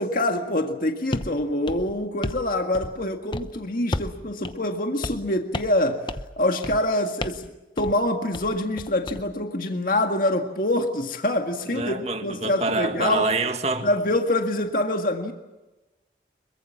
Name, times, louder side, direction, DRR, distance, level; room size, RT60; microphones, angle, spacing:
voice 1, 0.0-6.1 6.4-7.5 7.8-13.3 13.8-15.3, left 1 dB, 50° left, 1.9 m, -25 dB
sound 1, 1.1-1.3 1.7-2.5 2.7-3.1 3.3-3.5 3.9-4.2 4.4-4.6 5.0-5.3 5.5-5.8 6.1-6.3 6.6-6.9 7.2-7.5 7.8-8.0 8.3-9.2, left 1 dB, 25° left, 0.8 m, -32 dB
voice 2, 11.7-13.9, right 3 dB, 40° right, 2.1 m, -26 dB
26.0 x 23.0 x 7.2 m
head